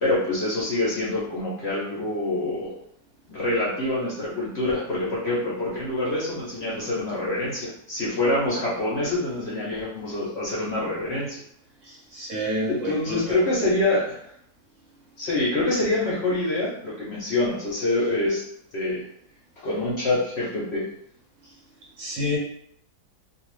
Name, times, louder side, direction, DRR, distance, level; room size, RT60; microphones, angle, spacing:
voice 1, 0.0-2.7 3.3-11.4 12.7-14.2 15.2-18.4 18.7-19.0 19.6-20.8, left 2 dB, 60° left, -6 dB, 0.7 m, -26 dB
voice 2, 11.8-13.4 21.4-21.5 22.0-22.4, equal, 60° right, -3 dB, 0.8 m, -29 dB
2.6 x 2.4 x 3.1 m, 0.70 s
omnidirectional pair, 1.8 m